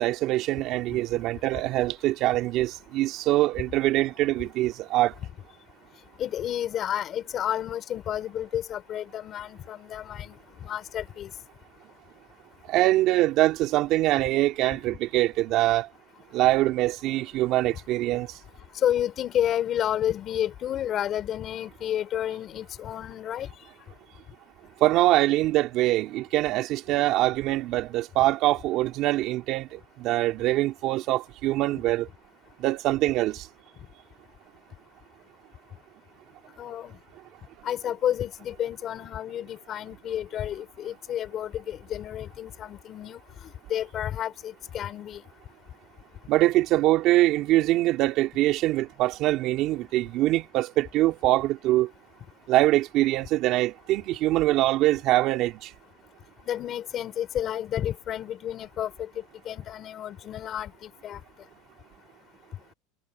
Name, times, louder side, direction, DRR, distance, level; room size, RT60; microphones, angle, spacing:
voice 1, 0.0-5.1 12.7-15.9 16.3-18.3 24.8-32.1 32.6-33.5 46.3-51.9 52.5-55.7, right 16 dB, 45° right, 3.2 m, -23 dB
voice 2, 6.2-10.3 10.6-11.3 18.8-23.5 36.6-36.9 37.6-45.2 56.5-61.2, left 11 dB, 35° left, 4.3 m, -31 dB
supercardioid pair, 145°, 0 cm